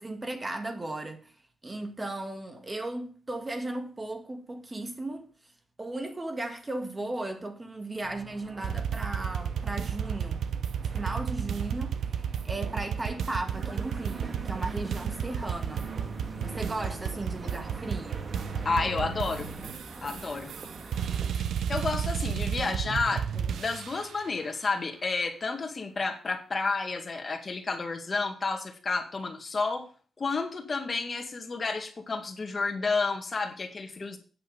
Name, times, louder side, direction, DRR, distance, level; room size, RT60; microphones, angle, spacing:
voice 1, 0.0-1.3 1.6-5.3 5.8-10.4 10.8-15.9 16.4-18.3, right 2 dB, 20° right, 1.8 m, -36 dB
sound 1, 8.0-19.7, right 4 dB, 55° right, 1.7 m, -43 dB
sound 2, 8.6-24.2, right 8 dB, 80° right, 0.6 m, -32 dB
sound 3, 13.5-21.3, right 3 dB, 40° right, 2.0 m, -44 dB
voice 2, 18.6-19.5 20.0-20.5 21.7-29.9 30.2-34.2, left 4 dB, 35° left, 2.1 m, -31 dB
9.3 x 6.3 x 6.9 m
cardioid pair, 95°, 0 cm